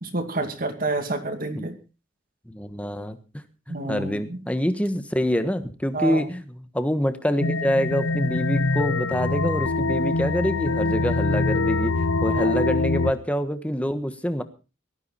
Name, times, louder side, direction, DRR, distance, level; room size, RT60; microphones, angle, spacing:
voice 1, 0.0-1.7 3.7-4.4 5.9-6.3 12.3-12.6, right 2 dB, 45° right, 6 dB, 2.4 m, -29 dB
voice 2, 2.5-14.4, equal, 5° left, 9 dB, 1.3 m, -26 dB
sound 1, 7.4-13.1, left 3 dB, 85° left, 0.8 m, -24 dB
18.0 x 13.5 x 4.2 m, 0.33 s
head